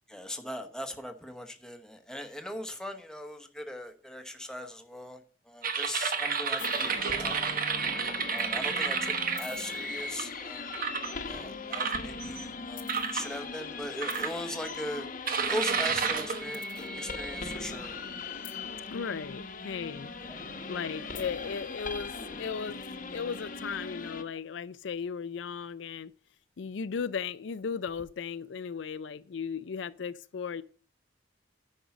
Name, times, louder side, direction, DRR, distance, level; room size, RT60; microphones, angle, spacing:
voice 1, 0.1-7.6 8.3-10.7 11.3-15.1 15.5-18.0 20.2-20.4 22.2-22.3, equal, 5° left, 1.0 m, -39 dB
sound 1, 5.6-10.2 10.7-11.1 11.7-12.4 12.9-13.3 14.0-14.7 15.3-17.6, right 5 dB, 50° right, 1.0 m, -31 dB
sound 2, 6.6-24.2, left 4 dB, 45° left, 1.0 m, -40 dB
voice 2, 18.9-20.1 20.7-22.8 23.1-26.1 26.6-30.6, left 6 dB, 75° left, 0.4 m, -36 dB
10.0 x 5.4 x 5.9 m
head